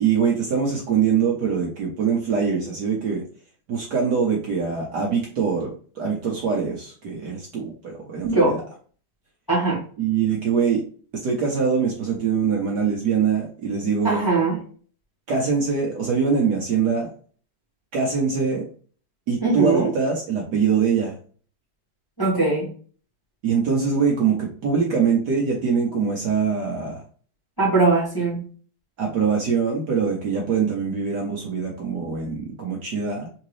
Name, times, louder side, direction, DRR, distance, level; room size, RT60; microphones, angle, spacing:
voice 1, 0.0-3.2 3.7-8.6 10.0-10.8 11.1-14.2 15.3-17.1 17.9-18.7 19.3-21.1 23.4-27.0 29.0-33.3, right 6 dB, 60° right, -1 dB, 1.3 m, -23 dB
voice 2, 8.2-8.6 9.5-9.8 14.0-14.6 19.4-19.9 22.2-22.7 27.6-28.4, right 3 dB, 10° left, -7 dB, 1.8 m, -20 dB
3.9 x 3.6 x 3.2 m, 0.43 s
omnidirectional pair, 2.3 m